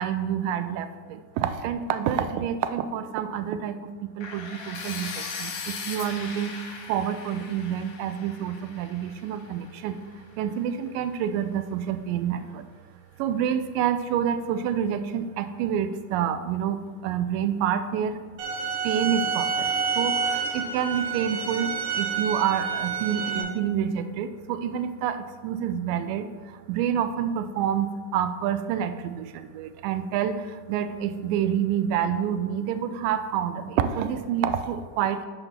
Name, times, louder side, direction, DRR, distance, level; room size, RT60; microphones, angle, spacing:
voice 1, 0.0-6.5 6.9-10.0 10.4-12.7 13.2-18.2 18.8-35.3, right 9 dB, 85° right, 10 dB, 2.2 m, -28 dB
sound 1, 4.2-10.1, left 5 dB, 70° left, 2.1 m, -38 dB
sound 2, 18.4-23.4, right 6 dB, 65° right, 2.5 m, -28 dB
6.0 x 5.3 x 5.7 m, 1.5 s
omnidirectional pair, 3.8 m